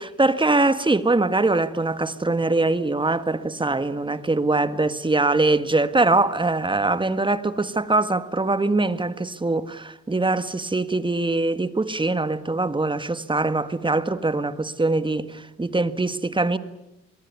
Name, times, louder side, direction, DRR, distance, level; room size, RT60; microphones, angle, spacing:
voice 1, 0.0-16.6, right 2 dB, 15° right, 1.6 m, -22 dB
25.5 x 22.0 x 9.5 m
cardioid pair, 90°, 30 cm